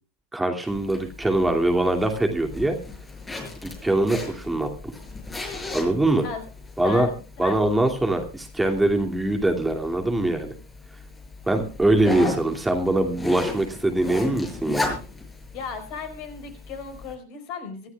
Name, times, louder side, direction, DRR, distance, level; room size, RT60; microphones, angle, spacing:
voice 1, 0.3-2.8 3.8-4.7 5.7-6.3 6.8-7.1 7.4-10.5 11.5-15.0, right 1 dB, 10° right, 3 dB, 2.7 m, -23 dB
Zipper (clothing), 0.7-17.1, left 2 dB, 10° left, 6.2 m, -36 dB
voice 2, 6.8-7.6 15.5-17.9, left 5 dB, 50° left, 9 dB, 4.7 m, -35 dB
24.0 x 14.5 x 2.4 m, 0.35 s
figure-of-eight pair, 85°, 0 cm